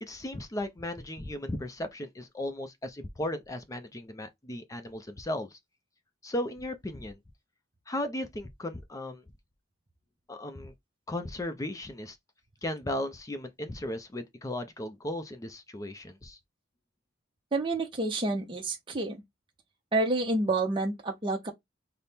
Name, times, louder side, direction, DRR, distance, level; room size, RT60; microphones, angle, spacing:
voice 1, 0.0-5.6 6.2-7.2 7.9-9.2 10.3-10.7 11.1-12.2 12.6-16.4, left 1 dB, 20° left, 0.5 m, -36 dB
voice 2, 17.5-19.2 19.9-21.5, right 2 dB, 25° right, 0.6 m, -29 dB
4.1 x 2.1 x 3.4 m
head